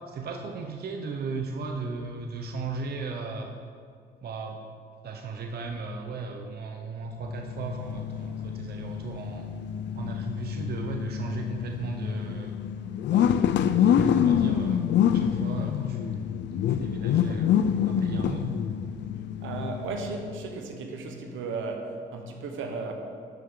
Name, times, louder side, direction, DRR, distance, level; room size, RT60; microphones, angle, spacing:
voice 1, 0.1-3.5 4.2-4.6 5.0-9.5 9.9-12.6 13.1-14.8 15.1-16.4 16.7-18.5, right 4 dB, 55° right, 3 dB, 0.8 m, -36 dB
sound 1, 7.2-20.5, left 9 dB, 65° left, 0.4 m, -27 dB
voice 2, 19.4-22.9, right 4 dB, 80° right, 3 dB, 1.1 m, -35 dB
13.0 x 5.5 x 3.8 m, 2.2 s
cardioid pair, 90°, 20 cm